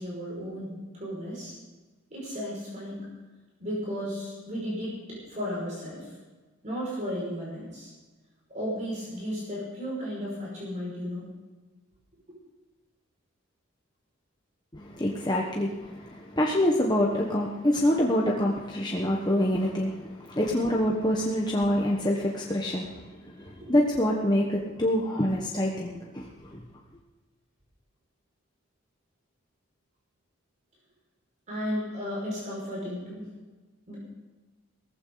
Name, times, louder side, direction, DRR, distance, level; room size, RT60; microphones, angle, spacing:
voice 1, 0.0-1.5 2.1-3.1 3.6-6.1 6.6-7.9 8.5-11.3 23.4-23.5 31.5-33.2 33.9-34.0, equal, 35° right, -5 dB, 5.9 m, -34 dB
voice 2, 14.7-23.1 23.4-26.6, left 1 dB, 20° left, -2 dB, 1.3 m, -26 dB
17.5 x 15.5 x 4.0 m, 1.2 s
head